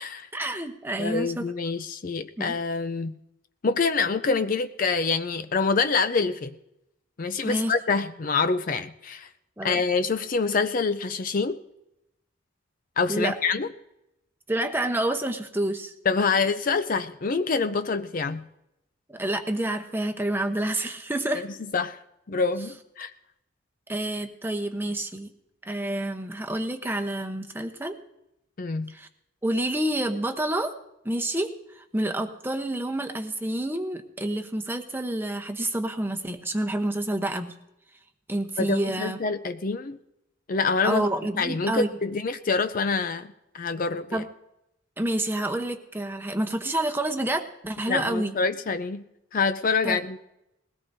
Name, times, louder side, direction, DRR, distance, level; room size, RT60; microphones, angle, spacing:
voice 1, 0.3-1.5 2.4-2.6 7.4-7.7 9.6-9.8 13.1-13.4 14.5-15.9 19.1-21.4 23.9-25.3 25.7-28.0 28.9-29.1 29.4-30.7 31.0-37.5 38.3-39.2 40.8-41.9 44.1-44.3 45.0-48.3 49.8-50.0, right 1 dB, 10° right, 5 dB, 0.8 m, -28 dB
voice 2, 1.0-3.1 3.6-6.5 7.2-9.3 9.6-11.6 13.0-13.7 16.1-18.4 21.7-22.0 22.3-23.1 28.6-28.9 38.6-40.0 40.5-41.1 41.4-43.3 43.5-44.2 47.9-49.0 49.3-50.2, left 4 dB, 40° left, 10 dB, 0.4 m, -26 dB
20.5 x 17.5 x 2.7 m, 0.86 s
head